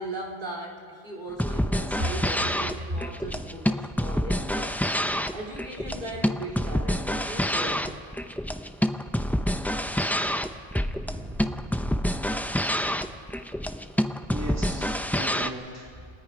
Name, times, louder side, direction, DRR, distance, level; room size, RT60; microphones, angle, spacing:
voice 1, 0.0-4.7 5.3-8.0, right 1 dB, 55° right, -2 dB, 2.9 m, -36 dB
sound 1, 1.3-15.5, equal, ahead, 0.4 m, -27 dB
voice 2, 11.0-12.2 14.3-16.1, right 1 dB, 15° right, -1 dB, 2.2 m, -39 dB
28.0 x 20.0 x 5.0 m, 2.2 s
omnidirectional pair, 1.0 m